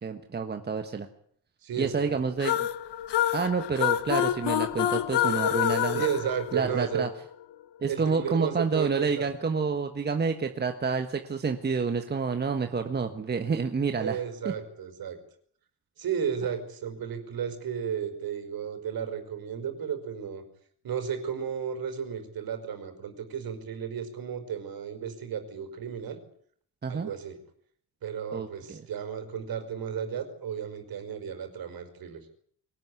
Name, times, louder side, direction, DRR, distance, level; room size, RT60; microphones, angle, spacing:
voice 1, 0.0-1.1 1.8-2.7 3.3-6.0 6.5-7.1 7.8-14.2 14.4-14.5 26.8-27.1 28.3-28.9, right 5 dB, 25° right, 6 dB, 1.5 m, -29 dB
voice 2, 1.6-2.2 5.9-7.1 7.9-9.3 14.0-15.2 16.0-20.4 20.8-26.2 26.9-27.4 28.0-32.2, right 8 dB, 55° right, 8 dB, 5.3 m, -33 dB
sound 1, 2.4-7.1, left 12 dB, 70° left, 1.4 m, -27 dB
23.0 x 19.0 x 9.7 m, 0.63 s
cardioid pair, 155°, 43 cm